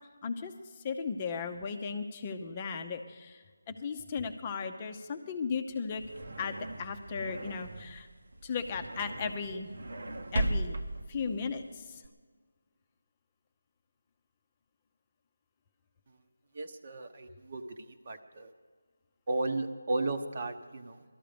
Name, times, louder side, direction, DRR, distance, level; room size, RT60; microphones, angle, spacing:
voice 1, 0.8-3.4 3.7-6.0 6.4-8.1 8.4-9.7 10.3-10.8 11.1-11.8, left 5 dB, 20° left, 6 dB, 0.7 m, -36 dB
sound 1, 5.7-12.1, right 1 dB, 65° right, 1.2 m, -38 dB
voice 2, 16.5-18.5 19.3-21.0, right 2 dB, 40° right, 7 dB, 1.0 m, -35 dB
19.0 x 13.0 x 5.2 m, 1.5 s
figure-of-eight pair, 170°, 0 cm